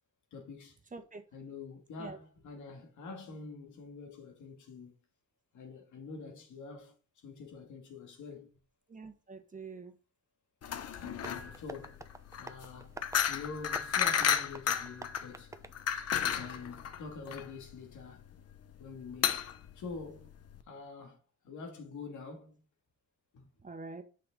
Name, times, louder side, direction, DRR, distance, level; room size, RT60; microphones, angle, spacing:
voice 1, 0.3-0.8 1.3-4.9 5.5-8.5 10.9-12.0 12.4-12.9 13.3-15.5 16.2-18.3 18.8-19.4 19.7-20.4 20.7-22.7 23.3-23.5, left 4 dB, 75° left, 2.4 m, -46 dB
voice 2, 8.9-9.9 23.6-24.0, right 4 dB, 25° right, 1.4 m, -45 dB
sound 1, 10.6-20.6, left 8 dB, 55° left, 0.9 m, -33 dB
Tap, 11.2-16.7, right 2 dB, 10° right, 0.8 m, -50 dB
7.9 x 5.9 x 3.8 m
cardioid pair, 90°, 30 cm